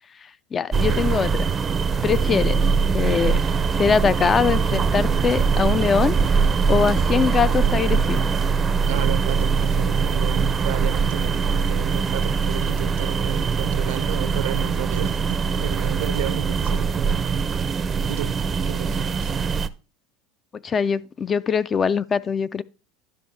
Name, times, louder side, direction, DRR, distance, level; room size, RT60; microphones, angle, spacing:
voice 1, 0.2-1.4 2.0-2.7 2.9-6.3 6.6-8.3 20.5-22.6, left 6 dB, 30° left, 0.4 m, -22 dB
sound 1, 0.7-19.7, right 5 dB, 25° right, 0.5 m, -22 dB
voice 2, 8.8-18.4 18.7-19.3, right 13 dB, 80° right, 0.6 m, -33 dB
11.5 x 5.4 x 4.1 m
supercardioid pair, 105°, 0 cm